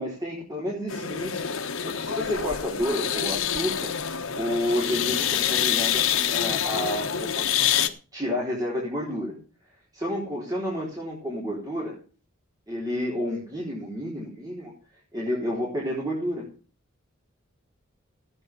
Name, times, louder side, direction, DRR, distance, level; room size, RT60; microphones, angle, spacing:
voice 1, 0.0-4.0 4.4-7.5 8.1-9.4 9.9-12.0 12.7-14.7 15.1-16.5, left 1 dB, 20° right, -4 dB, 4.1 m, -30 dB
sound 1, 0.9-7.9, left 9 dB, 90° left, 1.4 m, -26 dB
15.0 x 9.7 x 5.3 m, 0.38 s
head